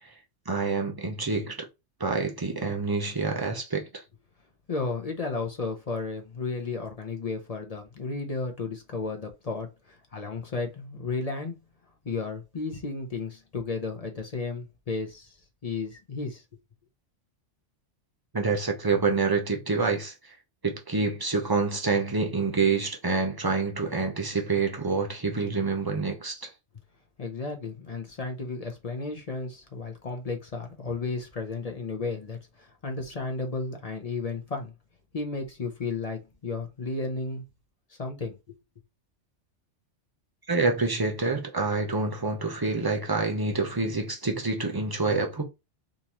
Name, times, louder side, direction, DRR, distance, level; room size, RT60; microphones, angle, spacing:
voice 1, 0.5-1.7 2.0-3.9 18.3-20.1 20.6-26.5 40.5-45.4, right 4 dB, 25° right, 0.5 m, -27 dB
voice 2, 4.7-11.5 12.0-15.3 15.6-16.4 27.2-34.7 35.1-37.4 37.9-38.6, left 3 dB, 40° left, 0.7 m, -33 dB
3.8 x 2.7 x 2.9 m
omnidirectional pair, 1.2 m